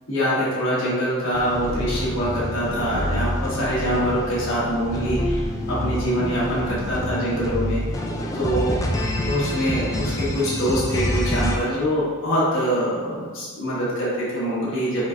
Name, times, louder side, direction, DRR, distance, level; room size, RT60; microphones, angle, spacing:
voice 1, 0.1-7.8 8.3-8.7 9.2-15.1, equal, 60° left, -8 dB, 1.4 m, -24 dB
sound 1, 1.3-11.6, left 1 dB, 15° left, 0.3 m, -27 dB
5.0 x 3.4 x 2.5 m, 1.5 s
head